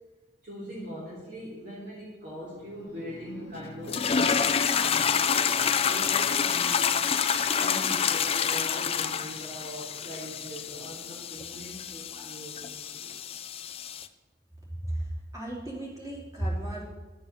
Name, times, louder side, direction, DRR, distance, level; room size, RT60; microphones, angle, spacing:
voice 1, 0.4-6.9 7.5-13.4, equal, 45° right, -7 dB, 2.9 m, -41 dB
sound 1, 2.3-12.3, equal, 85° right, 3.9 m, -48 dB
sound 2, 3.9-14.1, left 7 dB, 30° left, 0.5 m, -28 dB
voice 2, 14.8-16.8, right 1 dB, 20° right, -5 dB, 3.4 m, -34 dB
11.5 x 6.9 x 6.8 m, 1.2 s
head